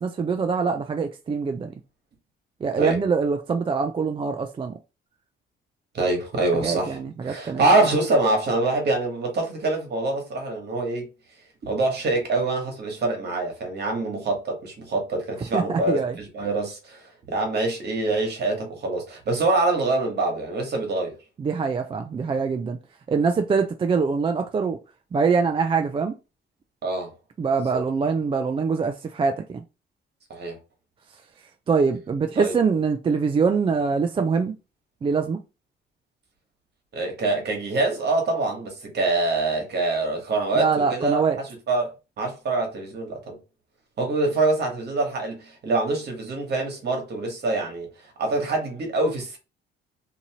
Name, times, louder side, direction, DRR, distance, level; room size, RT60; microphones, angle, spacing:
voice 1, 0.0-1.7 2.6-4.8 6.5-7.6 15.5-16.2 21.4-22.8 23.1-24.8 25.1-26.1 27.4-29.6 31.7-34.5 35.0-35.4 40.5-41.4, right 5 dB, 25° right, 0.3 m, -24 dB
voice 2, 5.9-7.0 7.2-11.1 11.6-21.1 26.8-27.1 27.7-27.8 30.3-30.6 32.4-32.5 36.9-41.2 41.7-41.9 42.2-43.4 44.0-47.9 48.2-49.4, right 2 dB, 55° right, 1.3 m, -25 dB
2.7 x 2.6 x 2.8 m
cardioid pair, 90°, 20 cm